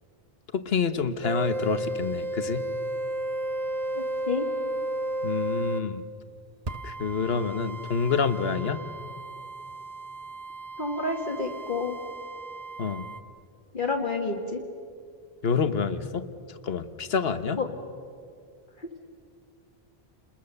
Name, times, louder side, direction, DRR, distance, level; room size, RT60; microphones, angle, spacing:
voice 1, 0.5-2.7 5.2-6.0 6.8-8.8 12.8-13.1 15.4-16.3 16.6-17.6, left 5 dB, 75° left, 11 dB, 1.3 m, -27 dB
sound 1, 1.2-5.9 6.7-13.2, right 2 dB, 40° right, 1.1 m, -33 dB
voice 2, 4.0-4.5 10.8-12.0 13.7-14.6 17.6-17.7 18.8-18.9, left 3 dB, 55° left, 2 dB, 1.8 m, -29 dB
30.0 x 21.0 x 6.7 m, 2.3 s
omnidirectional pair, 1.0 m